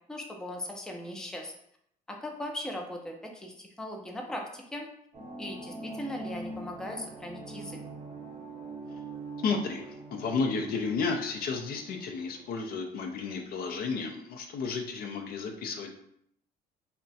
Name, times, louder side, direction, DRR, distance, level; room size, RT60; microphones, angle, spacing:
voice 1, 0.1-1.5 2.1-4.9 5.4-7.8, left 1 dB, 5° left, 1 dB, 0.4 m, -39 dB
sound 1, 5.1-12.5, right 2 dB, 40° right, 0.8 m, -43 dB
voice 2, 9.4-15.9, left 4 dB, 65° left, 4 dB, 0.5 m, -32 dB
2.4 x 2.1 x 3.9 m, 0.71 s
cardioid pair, 110°, 17 cm